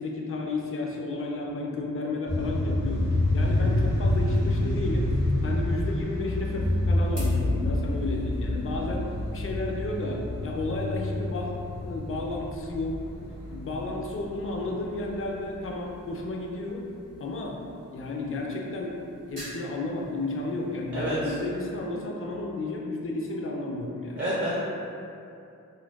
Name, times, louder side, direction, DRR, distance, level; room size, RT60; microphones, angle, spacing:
voice 1, 0.0-3.1 3.3-5.1 5.4-9.1 9.3-13.0 13.5-16.9 17.2-17.6 17.9-19.0 19.3-24.2, left 2 dB, 45° left, -1 dB, 0.4 m, -32 dB
sound 1, 2.3-15.4, left 1 dB, 55° right, 1.2 m, -28 dB
sound 2, 6.3-23.2, equal, 75° right, 1.4 m, -52 dB
voice 2, 20.9-21.4 24.2-24.6, right 1 dB, 35° right, -9 dB, 0.6 m, -29 dB
2.5 x 2.1 x 2.3 m, 2.6 s
cardioid pair, 60°, 32 cm